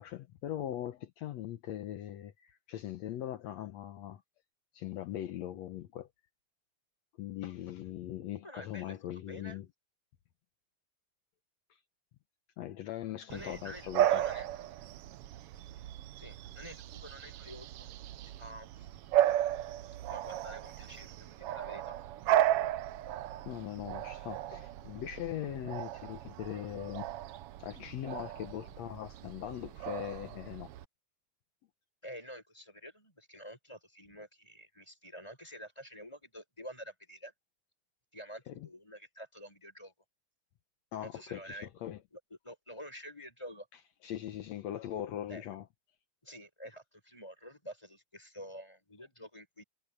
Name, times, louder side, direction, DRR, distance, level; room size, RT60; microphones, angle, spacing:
voice 1, 0.0-4.2 4.7-6.1 7.2-9.7 12.6-14.2 23.5-27.1 27.6-30.7 38.5-38.7 40.9-42.0 44.0-45.6, left 12 dB, 70° left, 2.0 m, -40 dB
voice 2, 8.4-9.6 13.3-14.5 16.2-18.0 18.2-18.9 20.1-22.0 32.0-37.3 38.1-39.9 41.0-41.7 42.1-43.7 45.3-45.4 46.2-49.6, equal, 10° left, 6.4 m, -48 dB
Bark / Bird vocalization bird call bird song, 13.3-30.8, right 12 dB, 80° right, 1.3 m, -35 dB
omnidirectional pair, 3.4 m